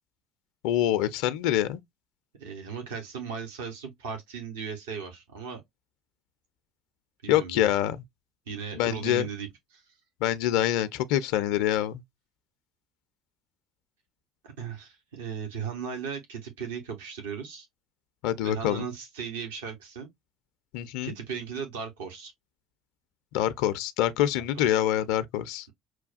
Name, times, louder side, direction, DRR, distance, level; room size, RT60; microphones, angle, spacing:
voice 1, 0.6-1.8 7.3-8.0 8.7-9.3 10.2-12.0 18.2-18.9 20.7-21.1 23.3-25.7, left 12 dB, 65° left, 0.4 m, -25 dB
voice 2, 2.4-5.6 7.2-7.7 8.5-9.9 14.4-17.7 18.4-20.1 21.0-22.3, right 6 dB, 70° right, 0.8 m, -37 dB
6.0 x 2.2 x 2.4 m
figure-of-eight pair, 60°, 0 cm